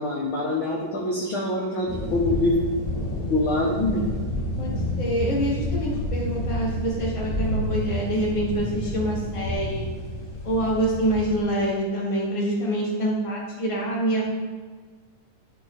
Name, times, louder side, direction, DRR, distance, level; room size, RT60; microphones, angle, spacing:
voice 1, 0.0-2.6 3.3-4.0, left 2 dB, 60° left, -3 dB, 1.3 m, -24 dB
sound 1, 1.9-11.4, left 1 dB, 35° left, 2.0 m, -29 dB
voice 2, 4.6-9.8 10.4-14.2, right 1 dB, 15° left, -6 dB, 1.5 m, -26 dB
12.5 x 4.6 x 4.0 m, 1.5 s
omnidirectional pair, 3.8 m